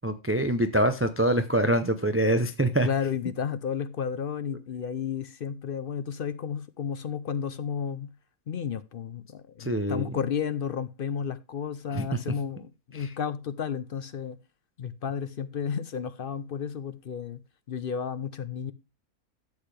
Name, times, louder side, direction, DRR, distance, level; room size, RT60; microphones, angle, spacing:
voice 1, 0.0-2.9 9.6-10.1 11.9-12.0 12.9-13.1, right 1 dB, 20° right, 0.3 m, -25 dB
voice 2, 2.8-8.1 8.5-14.4 14.8-17.4 17.7-18.7, left 7 dB, 55° left, 0.6 m, -32 dB
12.0 x 8.0 x 3.3 m
omnidirectional pair, 1.5 m